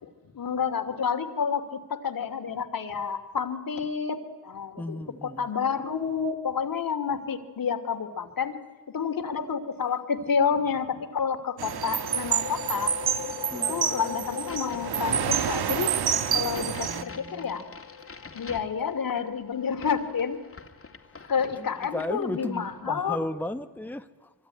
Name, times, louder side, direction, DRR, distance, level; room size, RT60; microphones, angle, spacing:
voice 1, 0.0-8.6 8.9-12.9 13.5-15.9 16.3-17.6 18.3-20.4 21.3-23.2, left 6 dB, 65° left, 2.7 m, -29 dB
voice 2, 4.8-5.5 11.6-12.0 13.5-14.2 16.4-17.7 21.6-24.3, left 1 dB, 5° left, 1.1 m, -36 dB
sound 1, 11.6-21.0, left 9 dB, 80° left, 1.6 m, -42 dB
sound 2, 11.6-17.0, right 8 dB, 90° right, 1.4 m, -28 dB
Crack, 14.2-22.8, left 4 dB, 35° left, 2.4 m, -47 dB
25.0 x 23.5 x 9.8 m
cardioid pair, 85°, 37 cm